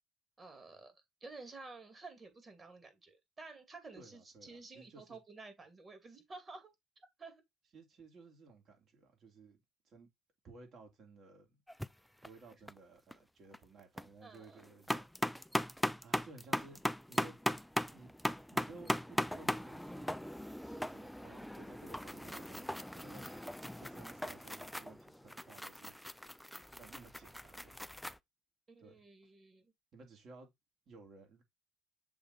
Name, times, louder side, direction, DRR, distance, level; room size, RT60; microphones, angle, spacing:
voice 1, 0.4-6.7 7.2-7.4 14.2-14.6 28.7-29.7, right 3 dB, 30° right, 2.4 m, -52 dB
voice 2, 3.9-5.2 7.7-9.6 9.8-10.1 10.4-11.6 12.2-15.1 15.7-16.8 17.1-17.4 17.9-18.1 18.5-20.3 20.6-23.5 23.8-25.9 26.8-27.8 28.8-29.0 29.9-30.5 30.9-31.4, right 3 dB, 50° right, 2.7 m, -57 dB
sound 1, 11.7-11.9 12.2-12.8 13.1-13.2 13.5-14.1 14.4-28.2, equal, 5° left, 0.4 m, -39 dB
6.9 x 3.6 x 4.0 m
hypercardioid pair, 55°, 0 cm